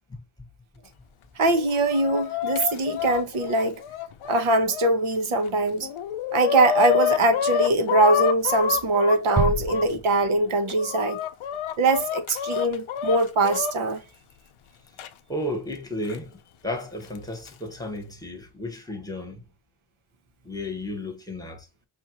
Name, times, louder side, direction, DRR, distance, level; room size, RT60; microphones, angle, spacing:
Chicken rooster, 1.4-4.9 5.5-5.6 5.8-9.9 10.5-13.7 15.0-15.1 16.1-16.2 17.2-17.5, left 8 dB, 90° left, 0.6 m, -28 dB
voice 1, 1.4-3.8 4.3-5.9 6.3-11.2 11.8-14.0, right 2 dB, 80° right, 1.0 m, -22 dB
sound 1, 9.4-10.8, right 2 dB, 20° right, 0.4 m, -28 dB
voice 2, 15.3-16.3 16.6-19.4 20.4-21.7, left 1 dB, 10° left, 1.2 m, -33 dB
5.4 x 2.6 x 2.7 m
wide cardioid pair, 125°, 48 cm